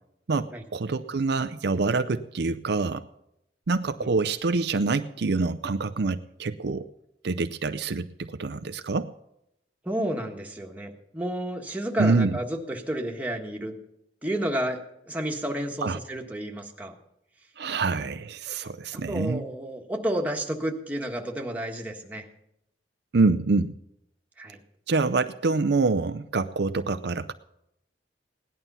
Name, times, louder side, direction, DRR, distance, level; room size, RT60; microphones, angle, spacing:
voice 1, 0.3-3.1 3.7-6.9 7.2-9.1 12.0-12.4 15.8-16.0 17.6-19.5 23.1-23.7 24.9-27.3, right 3 dB, 65° right, 10 dB, 0.5 m, -26 dB
voice 2, 9.8-13.7 14.2-14.8 15.1-16.9 18.9-22.3 24.4-24.6, right 1 dB, 10° right, 1 dB, 1.6 m, -31 dB
17.5 x 11.0 x 5.6 m, 0.80 s
head